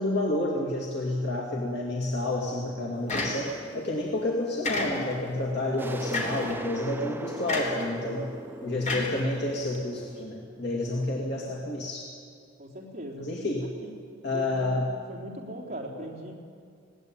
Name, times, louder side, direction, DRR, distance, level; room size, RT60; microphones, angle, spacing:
voice 1, 0.0-8.3 8.6-12.1 13.2-13.7 14.2-14.9, left 1 dB, 60° left, -3 dB, 2.5 m, -29 dB
sound 1, 3.1-3.7 4.6-5.3 6.1-6.5 7.5-7.9 8.9-9.8, left 2 dB, 40° left, 3.6 m, -31 dB
sound 2, 5.8-11.3, right 1 dB, 10° right, 0.6 m, -40 dB
voice 2, 12.6-13.2 13.6-13.9 14.3-14.8 15.1-16.4, equal, 40° right, -2 dB, 3.7 m, -40 dB
20.0 x 18.0 x 9.1 m, 2.2 s
head